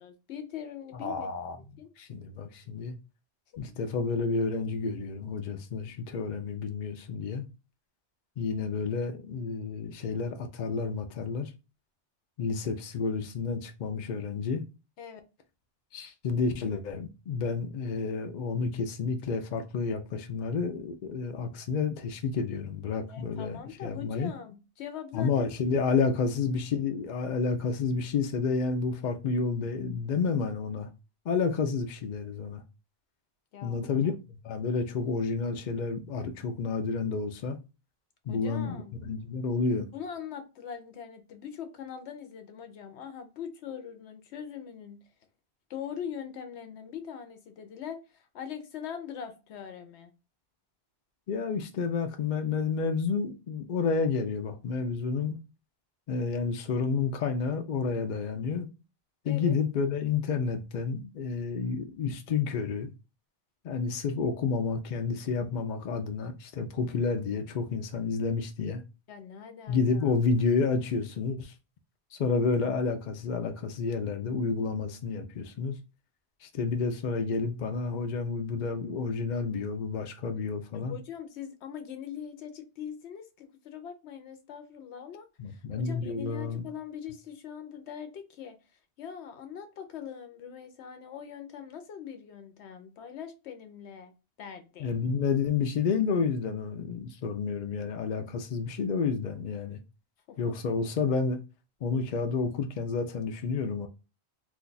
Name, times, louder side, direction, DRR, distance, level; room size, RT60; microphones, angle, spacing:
voice 1, 0.0-1.9 3.6-3.8 15.0-15.2 23.1-26.0 33.5-34.2 38.3-39.0 39.9-45.0 45.7-50.1 59.3-59.5 69.1-70.1 80.7-88.6 89.0-94.1 94.4-94.9 100.3-100.5, left 8 dB, 75° left, 0.9 m, -42 dB
voice 2, 0.9-1.6 2.0-3.0 3.6-7.5 8.4-11.5 12.4-14.6 15.9-24.3 25.1-30.9 31.3-32.6 33.6-37.6 38.3-39.9 51.3-55.4 56.1-58.7 59.2-62.9 63.6-68.8 69.7-71.5 72.1-75.8 76.4-81.0 85.4-86.7 94.8-99.8 100.4-101.4 101.8-103.9, left 5 dB, 55° left, 0.5 m, -30 dB
2.6 x 2.3 x 3.8 m
omnidirectional pair, 1.1 m